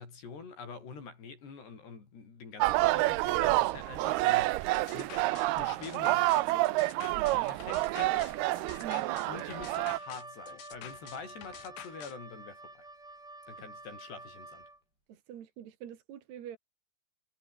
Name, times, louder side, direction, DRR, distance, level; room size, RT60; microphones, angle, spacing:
voice 1, 0.0-6.7 7.3-8.4 9.3-12.9 13.5-14.6, left 5 dB, 60° left, 8.3 m, -46 dB
sound 1, 2.6-10.0, right 19 dB, 85° right, 2.2 m, -28 dB
sound 2, 4.8-12.2, left 12 dB, 85° left, 4.2 m, -49 dB
voice 2, 7.1-7.5 8.8-9.2 15.1-16.6, right 10 dB, 65° right, 4.0 m, -45 dB
Wind instrument woodwind instrument, 8.1-14.8, right 2 dB, 20° right, 7.7 m, -49 dB
omnidirectional pair, 5.4 m